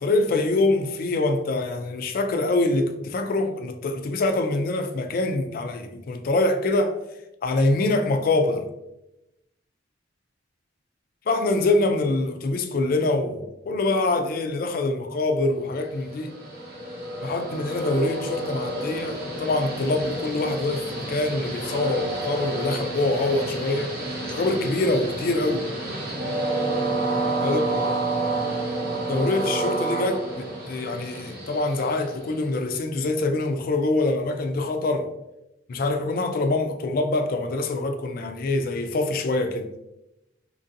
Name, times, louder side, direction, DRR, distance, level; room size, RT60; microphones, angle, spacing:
voice 1, 0.0-7.0 7.4-8.6 11.3-16.3 17.2-23.9 24.3-25.7 27.4-27.6 28.9-35.1 35.7-39.7, left 2 dB, 50° left, 0.3 m, -24 dB
Train, 15.8-32.6, right 2 dB, 50° right, 0.7 m, -30 dB
2.9 x 2.6 x 2.5 m
head